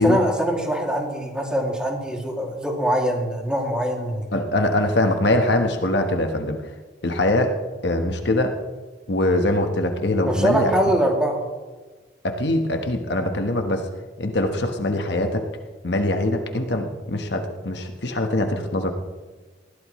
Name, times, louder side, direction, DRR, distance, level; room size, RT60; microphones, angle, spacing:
voice 1, 0.0-4.3 10.2-11.4, right 1 dB, 5° right, -1 dB, 2.6 m, -23 dB
voice 2, 4.3-6.6 7.0-7.5 7.8-8.6 9.1-10.8 12.2-13.9 14.2-15.5 15.8-18.9, left 1 dB, 65° left, 5 dB, 1.3 m, -22 dB
20.5 x 15.5 x 3.2 m, 1.3 s
head